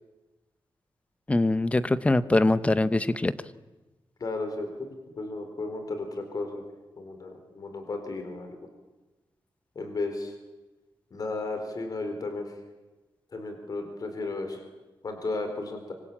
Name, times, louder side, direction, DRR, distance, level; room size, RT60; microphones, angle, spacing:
voice 1, 1.3-3.3, left 2 dB, 15° left, 14 dB, 0.8 m, -23 dB
voice 2, 4.2-6.6 7.0-8.6 9.7-10.3 11.1-12.5 13.3-14.6 15.0-15.9, left 3 dB, 45° left, 6 dB, 4.2 m, -34 dB
25.5 x 25.0 x 8.7 m, 1.1 s
wide cardioid pair, 180°, 9 cm